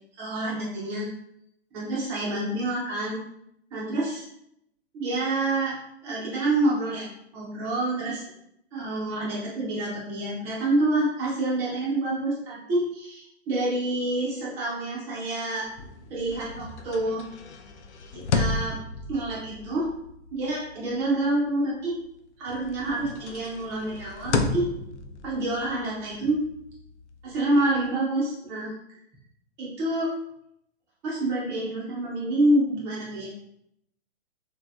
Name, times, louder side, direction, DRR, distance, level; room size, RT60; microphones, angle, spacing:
voice 1, 0.2-1.1 1.7-3.2 3.7-4.3 4.9-5.7 6.0-7.0 7.3-8.2 8.7-15.6 16.1-17.3 18.1-18.7 19.1-19.9 20.3-21.9 22.4-24.6 25.2-26.4 27.2-28.7 29.6-30.1 31.0-33.3, right 2 dB, 10° right, -6 dB, 0.3 m, -27 dB
sound 1, 15.7-22.1 22.5-27.9, left 4 dB, 85° left, 0.5 m, -34 dB
3.0 x 2.6 x 2.2 m, 0.77 s
hypercardioid pair, 135°, 33 cm